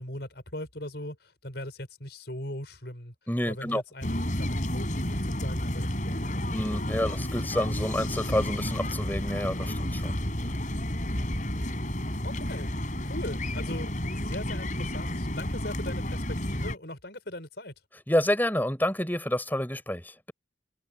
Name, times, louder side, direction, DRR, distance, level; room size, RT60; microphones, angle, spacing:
voice 1, 0.0-3.1 3.5-7.2 12.2-12.7 13.0-17.7, left 1 dB, 60° left, 5.8 m, -40 dB
voice 2, 3.3-3.8 6.5-10.2 18.1-20.3, left 1 dB, 10° left, 6.0 m, -28 dB
sound 1, 4.0-16.7, left 1 dB, 40° left, 5.5 m, -31 dB
head